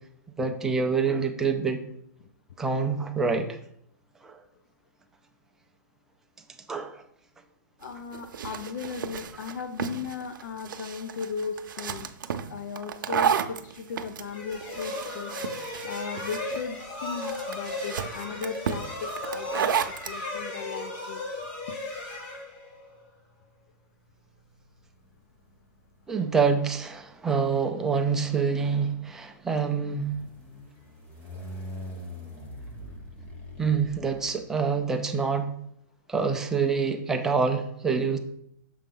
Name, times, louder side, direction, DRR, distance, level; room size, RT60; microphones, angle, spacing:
voice 1, 0.4-1.8 2.6-3.6 4.2-4.4 6.7-7.0 26.1-30.1 33.6-35.5 36.1-38.2, right 5 dB, 5° right, 4 dB, 0.3 m, -26 dB
voice 2, 7.8-12.1 12.5-15.4 15.9-19.7 20.1-21.2, left 5 dB, 60° left, 7 dB, 0.6 m, -36 dB
sound 1, 7.8-20.2, right 7 dB, 90° right, 0.6 m, -32 dB
sound 2, 14.3-23.0, left 2 dB, 35° left, 1.2 m, -36 dB
sound 3, 19.5-20.2 21.3-35.0, left 1 dB, 15° left, 1.0 m, -46 dB
6.8 x 4.9 x 3.8 m, 0.73 s
hypercardioid pair, 170°, 11 cm